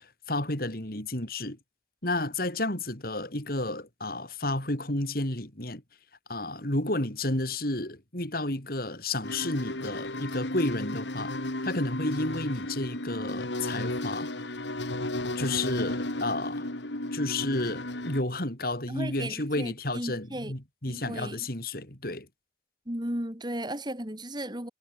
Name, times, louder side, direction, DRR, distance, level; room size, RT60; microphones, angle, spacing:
voice 1, 0.0-1.6 2.0-5.8 6.3-11.4 11.6-14.3 15.3-16.7 17.1-22.3, left 2 dB, 55° left, 4.7 m, -31 dB
sound 1, 9.2-18.2, left 1 dB, 85° left, 3.7 m, -34 dB
voice 2, 18.9-20.5 20.9-21.5 22.9-24.7, right 1 dB, 25° right, 3.4 m, -35 dB
head